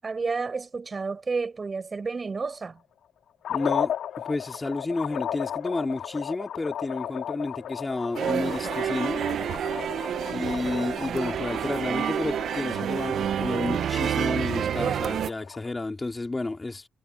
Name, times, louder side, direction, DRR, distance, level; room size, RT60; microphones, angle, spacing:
voice 1, 0.0-2.8, right 4 dB, 45° right, 7.7 m, -30 dB
sound 1, 3.4-15.7, left 10 dB, 75° left, 2.4 m, -35 dB
voice 2, 3.5-3.9 4.2-9.2 10.3-16.9, left 2 dB, 30° left, 3.9 m, -31 dB
sound 2, 8.2-15.3, right 9 dB, 70° right, 1.6 m, -28 dB
hypercardioid pair, 45°, 0 cm